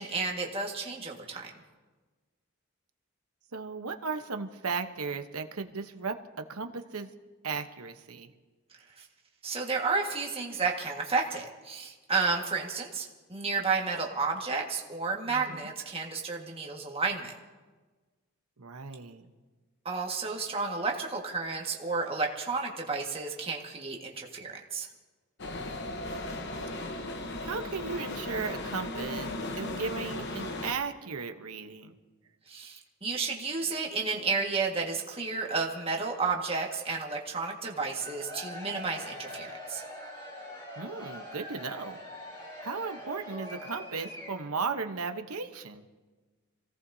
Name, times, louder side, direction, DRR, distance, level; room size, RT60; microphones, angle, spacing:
voice 1, 0.0-1.5 9.4-17.3 19.8-24.9 32.5-39.8, right 4 dB, 25° right, 0 dB, 1.7 m, -32 dB
voice 2, 3.5-6.2 6.5-7.1 7.4-8.3 15.3-15.7 18.6-19.3 27.4-31.9 40.8-42.0 42.6-45.8, right 4 dB, 85° right, 6 dB, 1.0 m, -36 dB
sound 1, 25.4-30.7, left 2 dB, 50° left, 1.0 m, -36 dB
Cheering / Crowd, 37.9-44.6, left 1 dB, 20° left, 2.4 m, -43 dB
27.0 x 17.5 x 2.8 m, 1.3 s
head